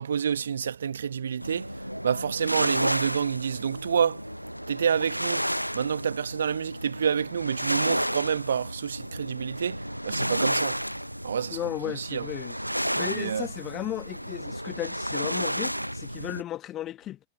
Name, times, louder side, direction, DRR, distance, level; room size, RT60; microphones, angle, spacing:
voice 1, 0.0-1.8 2.0-4.2 4.7-5.5 5.7-10.8 11.2-12.3 13.0-13.5, right 7 dB, 70° right, 1.3 m, -28 dB
sound 1, 1.4-16.4, equal, 90° right, 0.7 m, -32 dB
voice 2, 11.5-12.6 13.0-17.2, left 13 dB, 30° left, 1.5 m, -35 dB
figure-of-eight pair, 90°, 0 cm